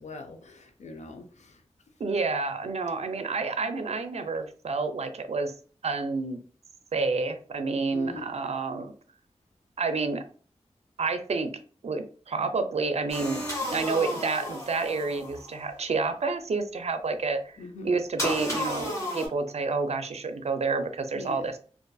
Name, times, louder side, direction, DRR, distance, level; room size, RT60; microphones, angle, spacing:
voice 1, 0.0-1.5 7.9-8.3 17.6-17.9 21.1-21.4, left 3 dB, 80° left, 6 dB, 0.5 m, -41 dB
voice 2, 2.0-5.5 5.8-6.4 6.9-8.9 9.8-10.2 11.0-11.5 11.8-13.4 13.7-17.6 17.8-21.6, right 4 dB, 65° right, 8 dB, 0.4 m, -29 dB
sound 1, 13.1-15.6 18.2-19.3, left 1 dB, 25° left, 1.2 m, -32 dB
2.5 x 2.4 x 2.3 m, 0.42 s
wide cardioid pair, 75°, 12 cm